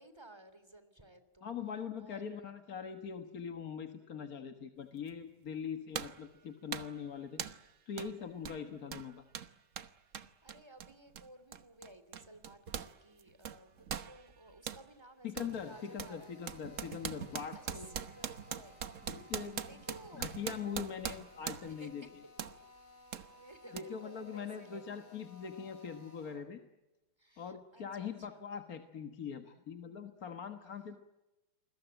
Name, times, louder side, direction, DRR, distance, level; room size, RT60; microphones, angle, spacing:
voice 1, 0.0-1.5 2.0-2.5 10.1-16.3 17.5-18.9 19.6-20.3 21.6-22.1 23.1-24.8 27.2-28.4, right 1 dB, 15° right, 11 dB, 2.9 m, -56 dB
voice 2, 1.4-7.4 7.9-9.2 15.2-18.0 19.0-19.8 20.1-22.1 23.7-26.6 27.4-31.0, left 7 dB, 50° left, 7 dB, 1.7 m, -42 dB
sound 1, 5.1-5.2 5.9-6.3 6.7-7.0 7.4-7.7 8.0-8.1 8.4-12.9 13.2-14.8 15.4-15.6 16.0-21.8 22.4-22.6 23.1-23.3 23.8-23.9, right 7 dB, 45° right, 1.3 m, -42 dB
Drill, 15.5-26.5, left 2 dB, 85° left, 6.0 m, -59 dB
29.0 x 21.5 x 9.0 m, 1.0 s
omnidirectional pair, 2.2 m